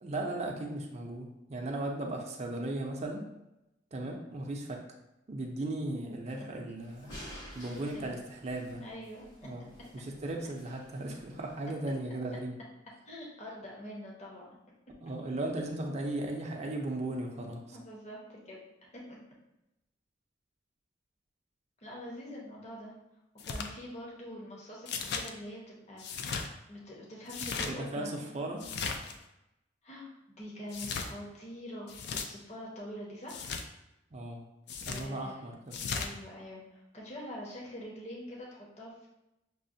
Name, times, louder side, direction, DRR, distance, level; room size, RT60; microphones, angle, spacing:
voice 1, 0.0-3.3 3.9-4.8 5.3-7.2 7.5-8.8 9.4-9.7 9.9-12.6 15.0-17.8 27.5-28.6 34.1-34.4 34.8-35.8, right 2 dB, 35° right, 1 dB, 0.5 m, -36 dB
sound 1, 6.8-11.7, equal, 80° left, 1.4 m, -51 dB
voice 2, 7.7-8.1 8.8-9.5 13.1-14.5 17.7-19.0 21.8-22.9 23.5-26.2 26.7-28.5 29.8-33.6 34.8-35.4 35.9-39.1, equal, 40° left, -3 dB, 0.8 m, -45 dB
sound 2, 23.4-23.7 24.9-25.3 26.0-26.5 27.3-27.7 28.6-29.2 30.7-31.1 31.9-32.3 33.3-33.6 34.7-35.1 35.7-36.1, left 5 dB, 65° left, 0.4 m, -36 dB
6.1 x 2.1 x 2.6 m, 0.91 s
head